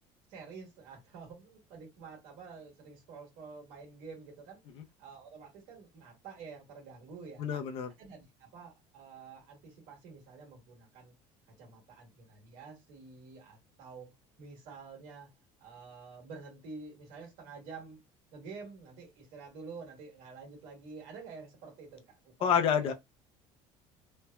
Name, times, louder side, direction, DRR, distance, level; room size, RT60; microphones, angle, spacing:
voice 1, 0.3-4.6 5.0-7.6 8.0-11.1 11.6-15.3 15.6-18.0 18.3-22.9, right 4 dB, 75° right, 1.4 m, -49 dB
voice 2, 7.4-7.9 22.4-22.9, left 7 dB, 45° left, 0.5 m, -28 dB
3.1 x 2.1 x 2.2 m
cardioid pair, 160°, 13 cm